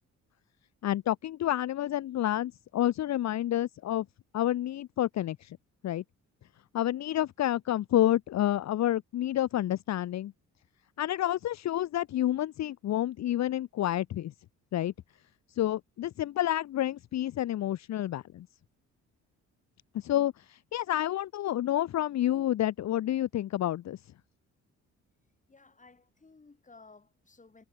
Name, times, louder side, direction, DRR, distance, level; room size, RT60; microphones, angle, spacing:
voice 1, 0.8-4.1 4.3-5.6 5.8-6.0 6.7-10.3 11.0-14.3 14.7-14.9 15.5-18.5 19.9-24.0, left 13 dB, 60° left, 0.9 m, -29 dB
voice 2, 25.5-27.6, left 3 dB, 25° left, 7.3 m, -56 dB
cardioid pair, 90°, 30 cm